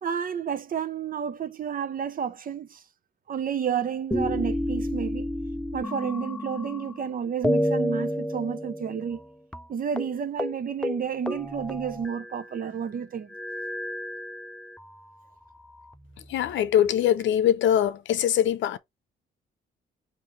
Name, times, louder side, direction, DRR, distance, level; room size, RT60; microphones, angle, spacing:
voice 1, 0.0-2.8 3.3-5.3 5.7-9.2 9.7-13.3, right 7 dB, 45° right, 0.7 m, -31 dB
sound 1, 4.1-7.1 7.4-9.3 9.5-9.6 10.0-10.1 10.4-10.6 10.8-12.6 13.3-14.9 15.6-16.5, equal, 5° left, 0.4 m, -30 dB
voice 2, 16.3-18.8, left 10 dB, 70° left, 0.7 m, -22 dB
5.5 x 2.7 x 3.2 m
cardioid pair, 90°, 20 cm